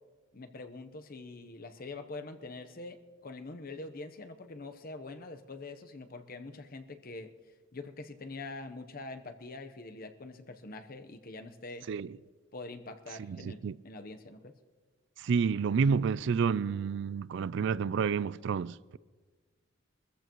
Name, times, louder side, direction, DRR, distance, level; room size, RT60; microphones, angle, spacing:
voice 1, 0.3-7.3 7.7-11.9 12.5-13.6 13.8-14.5, left 3 dB, 50° left, 0.9 m, -44 dB
voice 2, 13.2-13.7 15.2-19.0, right 6 dB, 65° right, 0.4 m, -30 dB
23.5 x 14.5 x 3.1 m
head